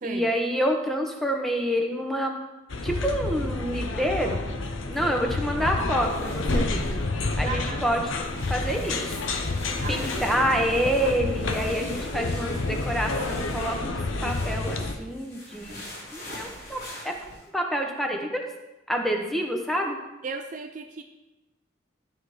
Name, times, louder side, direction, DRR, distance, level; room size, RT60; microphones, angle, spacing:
voice 1, 0.0-2.4 2.8-4.4 4.9-6.9 7.4-8.1 8.5-9.2 9.9-14.0 14.2-15.8 16.1-17.1 17.5-18.4 18.9-20.0, equal, ahead, 2 dB, 0.8 m, -27 dB
sound 1, 2.7-14.9, left 2 dB, 85° left, 0.8 m, -29 dB
sound 2, 6.0-7.3 7.8-7.9 8.2-17.4, left 1 dB, 50° left, 2.7 m, -43 dB
voice 2, 7.5-7.9 9.8-10.4 20.2-21.0, right 4 dB, 40° right, 6 dB, 0.4 m, -36 dB
12.5 x 4.2 x 4.8 m, 1.0 s
head